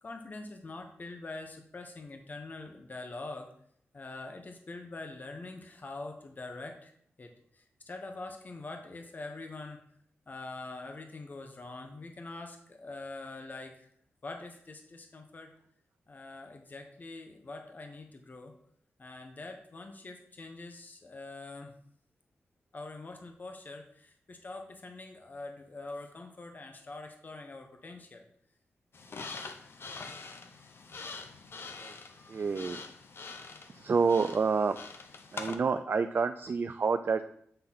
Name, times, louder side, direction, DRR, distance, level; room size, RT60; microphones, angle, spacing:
voice 1, 0.0-3.5 3.9-6.9 7.2-9.8 10.3-13.9 14.2-15.5 16.1-18.5 19.0-21.8 22.7-28.2 32.3-32.5, left 2 dB, 40° left, 4 dB, 1.1 m, -44 dB
sound 1, 28.9-35.6, left 4 dB, 55° left, 0.8 m, -44 dB
voice 2, 32.3-32.8 33.7-34.8 35.3-37.2, right 5 dB, 50° right, 9 dB, 0.4 m, -28 dB
8.0 x 3.9 x 5.7 m, 0.66 s
cardioid pair, 80°, 5 cm